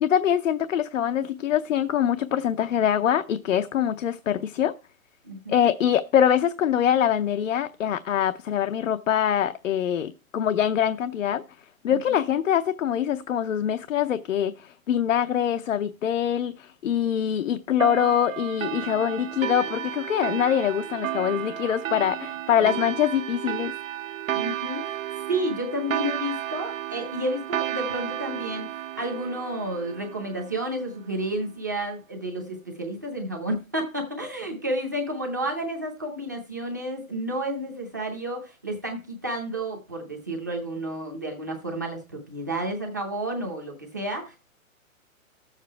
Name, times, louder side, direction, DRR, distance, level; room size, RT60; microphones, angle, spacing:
voice 1, 0.0-4.7 5.5-11.4 11.8-23.7, left 9 dB, 65° left, 0.7 m, -24 dB
voice 2, 5.2-5.6 11.9-12.2 22.6-22.7 24.3-24.9 25.3-44.4, right 1 dB, 15° right, 0.6 m, -31 dB
sound 1, 17.8-30.9, right 12 dB, 70° right, 0.7 m, -33 dB
12.5 x 7.4 x 4.5 m
hypercardioid pair, 180°, 41 cm